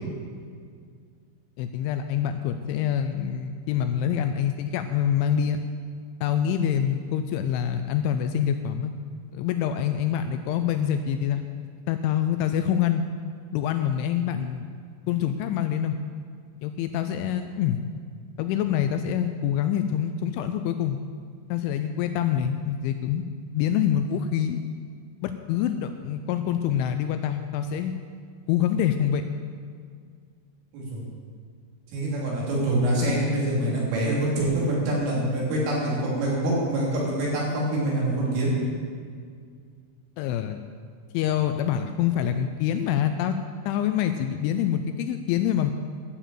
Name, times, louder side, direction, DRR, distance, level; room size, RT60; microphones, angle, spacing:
voice 1, 1.6-5.6 6.2-8.9 9.3-11.4 11.9-13.0 13.5-14.7 15.1-16.0 16.6-17.8 18.4-21.0 21.5-23.2 23.5-24.6 25.2-27.9 28.5-29.2 40.2-40.6 41.1-43.4 43.7-45.7, left 9 dB, 85° left, 8 dB, 2.8 m, -26 dB
voice 2, 31.9-38.5, right 1 dB, 75° right, -5 dB, 5.6 m, -25 dB
12.0 x 7.0 x 9.0 m, 2.1 s
omnidirectional pair, 5.8 m